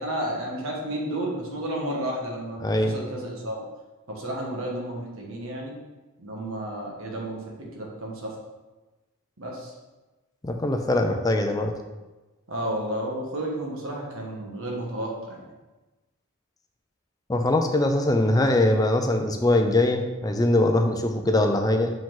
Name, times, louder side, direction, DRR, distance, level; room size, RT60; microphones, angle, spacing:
voice 1, 0.0-3.6 4.1-5.8 6.2-8.3 9.4-9.7 12.5-15.4, right 1 dB, 70° right, -1 dB, 1.5 m, -32 dB
voice 2, 2.6-2.9 10.4-11.7 17.3-21.9, left 1 dB, 15° left, 4 dB, 0.5 m, -22 dB
5.7 x 5.2 x 3.8 m, 1.2 s
head